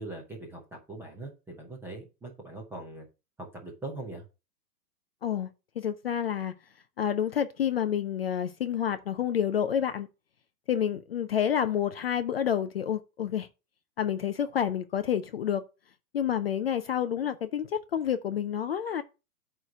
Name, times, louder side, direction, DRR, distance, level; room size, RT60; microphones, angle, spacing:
voice 1, 0.0-3.0 3.4-4.2, right 2 dB, 5° right, 0.7 m, -41 dB
voice 2, 5.8-6.5 7.0-10.1 10.7-13.5 14.0-15.6 16.1-19.0, left 9 dB, 40° left, 0.4 m, -29 dB
9.1 x 3.2 x 6.5 m
hypercardioid pair, 150°, 50 cm